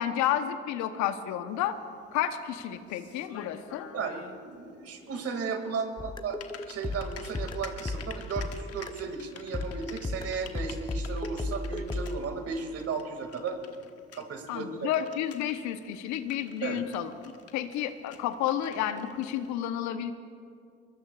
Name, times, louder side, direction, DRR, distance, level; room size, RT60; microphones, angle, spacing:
voice 1, 0.0-1.8 2.1-3.9 14.5-17.1 17.5-20.1, left 10 dB, 65° left, 10 dB, 1.0 m, -31 dB
Typing, 1.5-19.6, left 8 dB, 50° left, 1.3 m, -51 dB
voice 2, 3.9-13.6 14.1-14.9 16.6-16.8, right 5 dB, 50° right, 5 dB, 2.3 m, -35 dB
sound 1, 6.0-9.1 9.5-12.2, left 2 dB, 15° left, 0.8 m, -35 dB
24.0 x 22.0 x 2.4 m, 2.3 s
hypercardioid pair, 60°, 30 cm